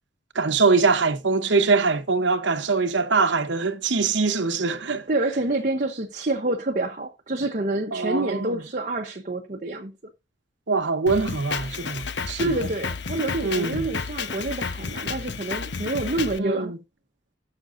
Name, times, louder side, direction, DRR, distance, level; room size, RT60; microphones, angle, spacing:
voice 1, 0.3-5.1 7.9-8.6 10.7-12.5 13.4-13.8 16.4-16.8, right 4 dB, 70° right, 1.0 m, -23 dB
voice 2, 5.1-9.9 12.4-16.7, right 2 dB, 40° right, 0.9 m, -27 dB
Drum kit, 11.1-16.4, left 5 dB, 65° left, 1.0 m, -31 dB
18.0 x 6.1 x 2.6 m
head